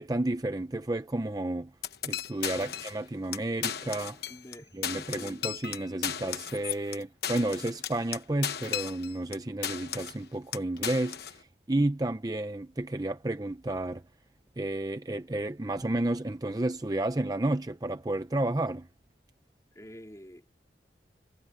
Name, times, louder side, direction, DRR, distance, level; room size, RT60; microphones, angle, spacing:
voice 1, 0.0-1.7 2.0-4.2 4.7-14.0 14.6-18.9, right 1 dB, 20° right, 0.6 m, -31 dB
sound 1, 1.8-3.0 3.3-3.4 3.6-4.6 4.8-9.4 9.6-10.2 10.5-11.4, left 9 dB, 60° left, 1.1 m, -35 dB
voice 2, 4.3-4.7 5.0-5.4 19.8-20.6, equal, 20° left, 3.5 m, -48 dB
head